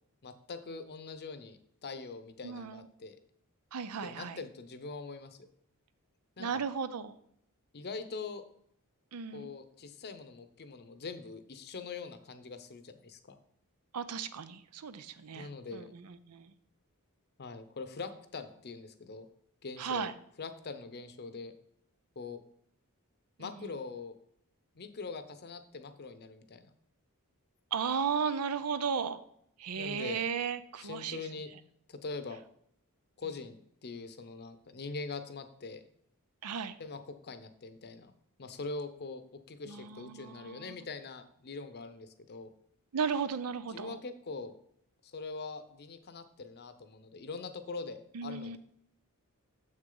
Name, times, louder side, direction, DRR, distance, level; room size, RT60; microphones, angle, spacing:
voice 1, 0.2-3.2 4.0-5.4 6.4-6.6 7.7-8.4 9.3-13.4 15.4-15.9 17.4-19.3 19.6-20.1 20.4-21.5 22.2-22.4 23.4-24.2 24.7-26.7 29.7-30.2 30.8-31.5 31.9-32.4 33.2-35.9 36.8-38.1 38.4-42.5 43.7-44.5 45.0-48.6, left 4 dB, 50° left, 10 dB, 0.7 m, -43 dB
voice 2, 2.4-2.8 3.7-4.4 6.4-7.1 9.1-9.5 13.9-16.5 19.8-20.1 23.4-23.5 27.7-29.2 29.6-31.2 36.4-36.8 39.7-40.7 42.9-44.0 48.1-48.6, right 6 dB, 90° right, 13 dB, 0.6 m, -35 dB
7.1 x 6.4 x 3.9 m, 0.69 s
head